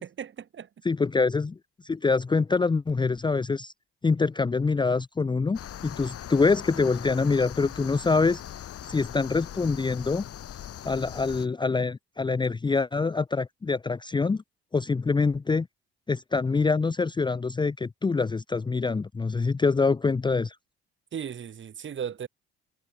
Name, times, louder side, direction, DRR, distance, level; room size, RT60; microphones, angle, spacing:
voice 1, 0.0-0.7 21.1-22.3, right 8 dB, 40° right, 2.5 m, -36 dB
voice 2, 0.9-1.6 1.8-3.7 4.0-8.4 8.9-10.2 10.8-14.4 14.7-15.7 16.1-20.6, left 4 dB, 15° left, 0.7 m, -25 dB
sound 1, 5.5-11.5, left 10 dB, 50° left, 4.3 m, -40 dB
figure-of-eight pair, 50°, 31 cm